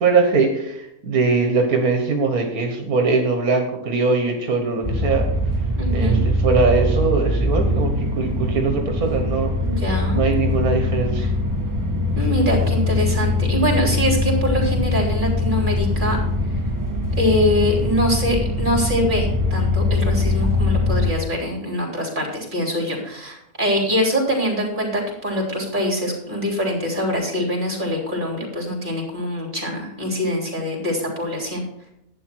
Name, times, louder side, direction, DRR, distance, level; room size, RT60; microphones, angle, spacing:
voice 1, 0.0-5.3 5.9-6.2 6.4-9.5 10.1-11.3, right 4 dB, 80° right, 4 dB, 1.8 m, -21 dB
sound 1, 4.8-21.1, left 2 dB, 15° right, 1.7 m, -22 dB
voice 2, 5.8-6.2 9.6-10.2 12.2-16.2 17.2-31.6, equal, 35° right, 0 dB, 3.6 m, -23 dB
11.5 x 8.9 x 4.6 m, 0.82 s
omnidirectional pair, 1.5 m